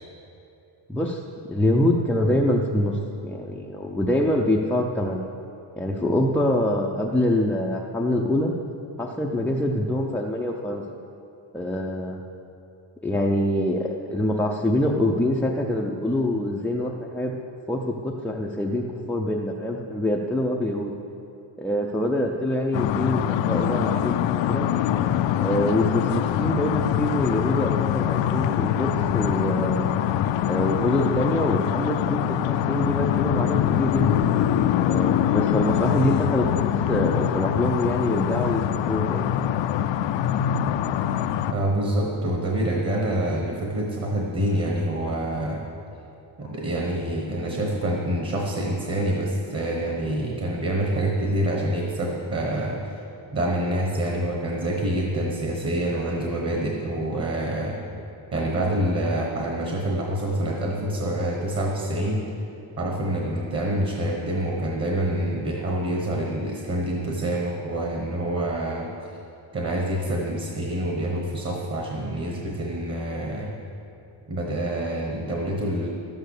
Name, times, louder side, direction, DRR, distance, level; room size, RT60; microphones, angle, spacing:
voice 1, 0.9-1.2 1.5-3.0 3.2-5.2 5.8-8.6 9.0-10.8 11.5-12.2 13.0-17.3 17.7-21.0 21.6-24.7 25.3-29.8 30.5-34.2 34.8-39.3, left 1 dB, 5° left, -2 dB, 0.4 m, -25 dB
sound 1, 22.7-41.5, left 10 dB, 65° left, 0.5 m, -24 dB
voice 2, 41.5-45.6 46.4-53.0 53.3-57.8 58.3-62.2 62.8-68.9 69.5-73.5 74.3-75.9, right 1 dB, 30° right, -1 dB, 1.3 m, -26 dB
12.5 x 9.0 x 6.6 m, 2.7 s
cardioid pair, 160°, 49 cm